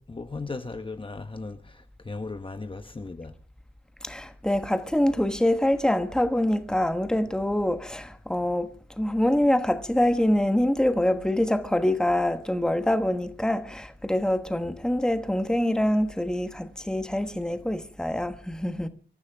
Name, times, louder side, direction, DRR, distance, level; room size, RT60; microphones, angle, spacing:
voice 1, 0.0-3.3 14.6-14.8, left 3 dB, 25° left, 1.1 m, -37 dB
voice 2, 4.0-8.7 9.0-18.9, left 1 dB, 5° left, 1.2 m, -25 dB
25.5 x 14.0 x 3.5 m
wide cardioid pair, 155°, 20 cm